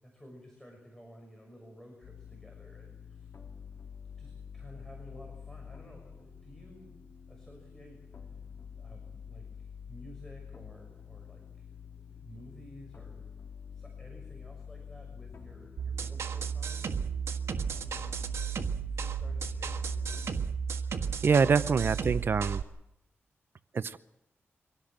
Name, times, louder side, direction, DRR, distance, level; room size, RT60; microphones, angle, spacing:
voice 1, 0.0-3.3 4.2-7.0 7.3-8.0 8.8-13.5 13.7-17.0 17.8-18.5 18.9-20.1, equal, 10° left, 1 dB, 6.1 m, -53 dB
sound 1, 2.0-20.5, left 7 dB, 55° left, 3.7 m, -47 dB
sound 2, 15.8-22.6, right 6 dB, 80° right, 1.6 m, -33 dB
voice 2, 21.2-22.6 23.7-24.0, right 5 dB, 55° right, 13 dB, 0.7 m, -25 dB
24.5 x 17.0 x 7.5 m, 0.86 s
wide cardioid pair, 95°, 5 cm